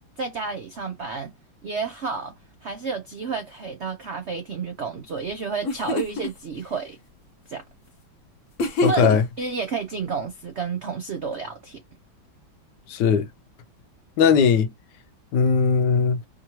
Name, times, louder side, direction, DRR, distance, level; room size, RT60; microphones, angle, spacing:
voice 1, 0.2-1.3 1.6-2.3 2.6-7.0 7.5-7.6 8.9-9.1 9.4-11.8, right 5 dB, 75° right, 0.6 m, -30 dB
sound 1, 5.3-5.4 5.6-6.3 8.6-9.4, left 1 dB, 50° left, 1.0 m, -26 dB
voice 2, 8.8-9.2 12.9-13.3 14.2-14.7 15.3-16.2, left 6 dB, 70° left, 1.1 m, -19 dB
4.9 x 3.0 x 2.9 m
omnidirectional pair, 2.2 m